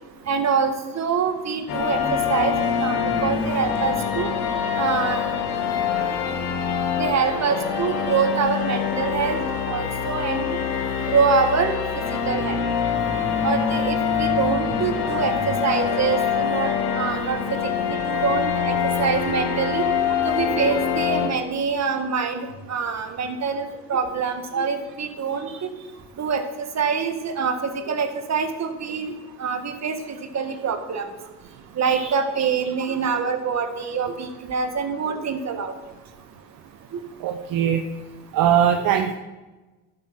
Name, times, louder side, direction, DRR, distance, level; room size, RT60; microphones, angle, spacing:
voice 1, 0.3-4.3 4.8-5.2 7.0-9.4 9.7-10.6 11.1-11.8 12.3-12.6 13.4-17.7 18.0-19.8 20.2-25.7 26.2-29.1 29.4-31.1 31.8-35.7, right 5 dB, 50° right, 6 dB, 1.8 m, -25 dB
sound 1, 1.7-21.3, left 7 dB, 85° left, 1.5 m, -25 dB
voice 2, 37.2-37.8 38.3-39.1, right 9 dB, 75° right, 6 dB, 0.8 m, -20 dB
11.5 x 7.8 x 5.8 m, 1.2 s
supercardioid pair, 60°, 33 cm